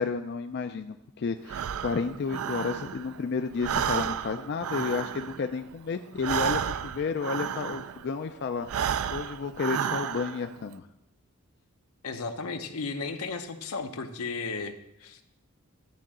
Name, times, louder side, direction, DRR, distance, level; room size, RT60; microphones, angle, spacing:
voice 1, 0.0-8.7 9.1-10.9, left 5 dB, 50° left, 7 dB, 0.4 m, -31 dB
Breathing, 1.5-3.2 3.5-8.1 8.6-10.5, right 8 dB, 70° right, 0.4 m, -32 dB
voice 2, 12.0-14.8 15.0-15.2, left 4 dB, 85° left, 6 dB, 0.9 m, -34 dB
11.5 x 3.9 x 7.4 m, 0.86 s
head